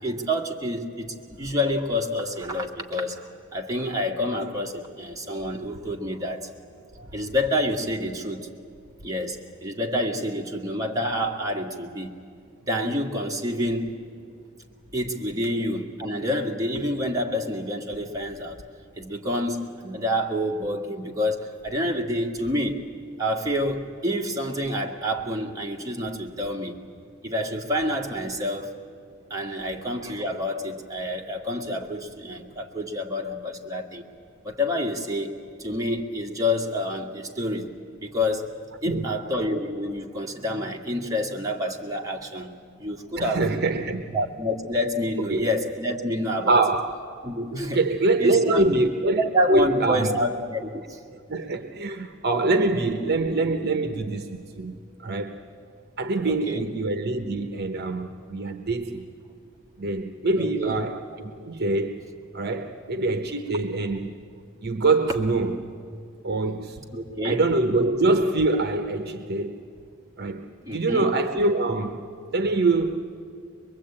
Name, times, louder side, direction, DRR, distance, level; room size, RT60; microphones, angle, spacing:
voice 1, 0.0-6.5 7.0-8.5 9.0-12.1 12.7-14.0 14.9-18.6 18.9-22.8 23.2-26.8 27.2-28.8 29.3-34.0 34.4-37.7 38.0-43.5 44.1-46.7 47.2-47.8 48.2-48.8 49.2-51.0 56.2-56.6 60.4-60.8 66.9-67.4 70.6-71.1, left 1 dB, 15° right, 1.9 m, -28 dB
voice 2, 38.8-39.2 43.2-44.2 45.3-45.4 46.5-46.9 47.7-50.2 51.3-55.4 56.0-59.1 59.8-62.1 62.3-64.1 64.6-65.7 66.2-66.8 67.2-69.6 70.2-72.1 72.3-73.2, right 2 dB, 50° right, 1.0 m, -24 dB
23.0 x 22.5 x 8.7 m
head